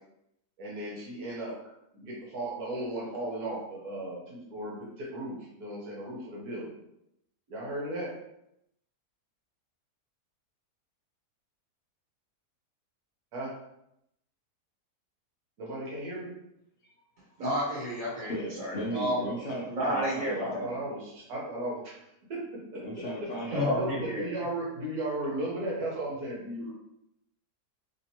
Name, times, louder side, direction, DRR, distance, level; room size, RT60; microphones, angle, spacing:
voice 1, 0.6-1.6 1.9-6.7 7.5-8.1 13.3-13.5 15.6-16.3 20.2-22.0 22.3-22.8 23.2-26.7, right 1 dB, 70° right, -4 dB, 1.6 m, -36 dB
voice 2, 17.4-19.3 19.7-20.7 23.5-24.2, equal, 55° right, -5 dB, 1.7 m, -30 dB
voice 3, 18.3-20.7 22.8-24.1, equal, 60° left, -4 dB, 0.9 m, -36 dB
3.4 x 2.8 x 2.9 m, 0.81 s
omnidirectional pair, 1.7 m